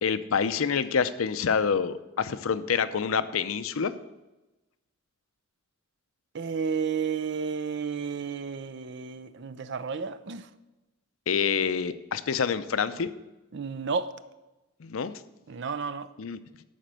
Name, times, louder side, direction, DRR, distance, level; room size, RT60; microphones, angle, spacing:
voice 1, 0.0-3.9 11.3-13.1 14.8-15.1 16.2-16.4, left 6 dB, 85° left, 0.6 m, -27 dB
voice 2, 6.3-10.5 13.5-14.1 15.5-16.1, right 5 dB, 60° right, 0.5 m, -32 dB
12.0 x 4.4 x 7.6 m
head